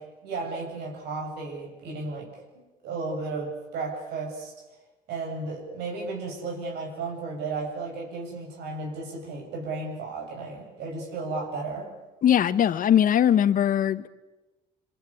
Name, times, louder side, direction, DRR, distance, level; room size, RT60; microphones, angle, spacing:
voice 1, 0.0-2.3 2.8-4.5 5.1-11.9, right 3 dB, 80° right, 7.5 m, -34 dB
voice 2, 12.2-14.1, left 9 dB, 55° left, 1.3 m, -20 dB
27.0 x 23.5 x 8.5 m
cardioid pair, 110°, 17 cm